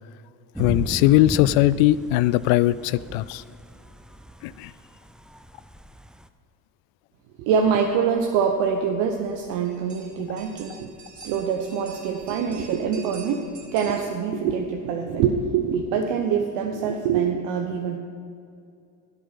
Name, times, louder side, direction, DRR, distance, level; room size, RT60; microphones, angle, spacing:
voice 1, 0.6-3.4 4.4-4.7, left 15 dB, 75° left, 18 dB, 0.5 m, -20 dB
Thunder / Rain, 0.6-6.3, right 1 dB, ahead, 0.5 m, -37 dB
sound 1, 7.4-14.0, right 4 dB, 40° right, 2.2 m, -48 dB
voice 2, 7.4-18.0, right 7 dB, 75° right, 3 dB, 1.0 m, -25 dB
12.0 x 8.3 x 5.7 m, 2.4 s
hypercardioid pair, 70°, 44 cm